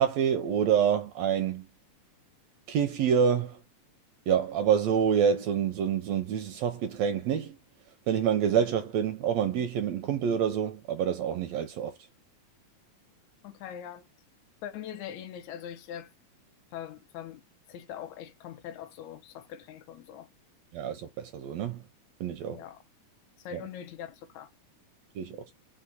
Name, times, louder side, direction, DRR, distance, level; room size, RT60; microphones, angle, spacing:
voice 1, 0.0-1.6 2.7-3.6 4.3-7.6 8.1-11.9 20.7-21.8 22.2-22.6 23.5-23.6 25.1-25.5, right 8 dB, 80° right, 1.5 m, -27 dB
voice 2, 13.4-14.1 14.6-16.1 16.7-17.4 17.7-20.3 22.5-22.8 23.4-24.5, left 10 dB, 80° left, 1.9 m, -42 dB
4.8 x 2.1 x 4.0 m
omnidirectional pair, 3.3 m